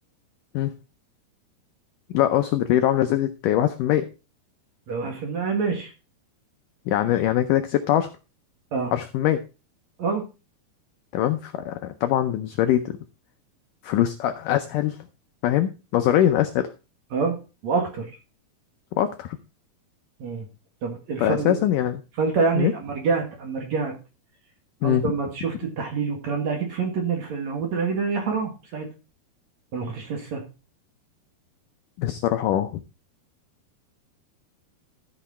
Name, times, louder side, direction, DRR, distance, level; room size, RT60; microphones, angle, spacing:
voice 1, 2.1-4.1 6.9-8.1 8.9-9.4 11.1-13.0 13.8-15.0 15.4-16.7 19.0-19.4 21.2-22.0 22.6-22.7 24.8-25.1 32.0-32.8, left 12 dB, 80° left, 8 dB, 1.9 m, -22 dB
voice 2, 4.9-5.9 8.7-8.9 10.0-10.2 17.1-17.4 17.6-18.1 20.2-20.5 20.8-21.7 22.2-23.9 24.8-28.9 29.7-30.4, right 5 dB, 50° right, 2 dB, 2.7 m, -26 dB
14.0 x 6.0 x 4.3 m, 0.31 s
omnidirectional pair, 4.6 m